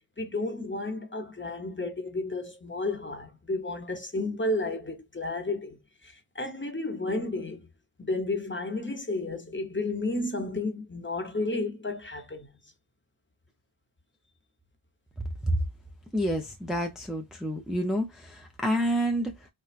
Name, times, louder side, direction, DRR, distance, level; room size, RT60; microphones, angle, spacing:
voice 1, 0.2-7.7 8.0-12.5, left 2 dB, 25° left, 0.9 m, -32 dB
voice 2, 16.1-19.5, equal, ahead, 0.6 m, -28 dB
4.4 x 2.2 x 2.4 m
wide cardioid pair, 80°, 48 cm